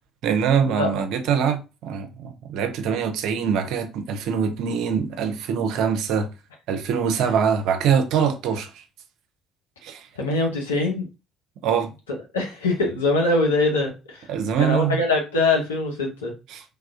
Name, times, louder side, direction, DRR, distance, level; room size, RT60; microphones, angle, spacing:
voice 1, 0.2-6.3 6.7-8.8 9.8-10.1 11.6-11.9 14.3-15.0 16.5-16.6, right 7 dB, 65° right, 0.5 m, -23 dB
voice 2, 10.2-11.1 12.3-14.3 14.6-16.3, left 2 dB, 85° left, 0.7 m, -23 dB
3.3 x 2.3 x 2.4 m
figure-of-eight pair, 50°, 0 cm